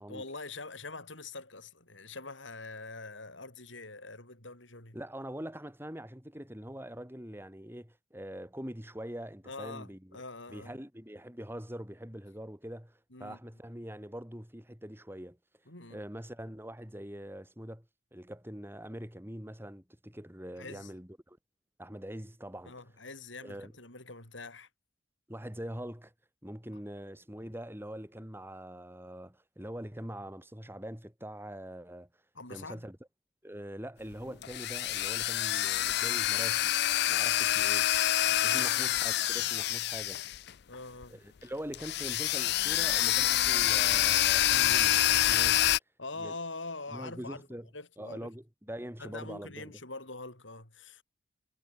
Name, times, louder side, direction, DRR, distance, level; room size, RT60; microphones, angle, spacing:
voice 1, 0.1-5.0 9.4-10.7 13.1-13.4 15.7-16.0 20.6-20.9 22.6-24.7 32.3-32.9 38.3-38.7 40.7-41.2 46.0-47.4 47.7-48.3 49.0-51.0, left 3 dB, 80° left, 7.9 m, -44 dB
voice 2, 4.9-10.2 10.5-15.4 15.9-17.8 18.1-21.4 21.8-22.8 23.4-23.7 25.3-26.1 26.4-32.1 32.5-33.0 33.4-36.8 37.1-37.9 38.4-40.4 41.1-45.6 46.2-46.3 46.9-47.7 48.0-49.7, equal, 10° right, 4.7 m, -43 dB
sound 1, 34.1-40.7 41.0-41.1 41.7-45.8, left 13 dB, 60° left, 0.5 m, -27 dB
head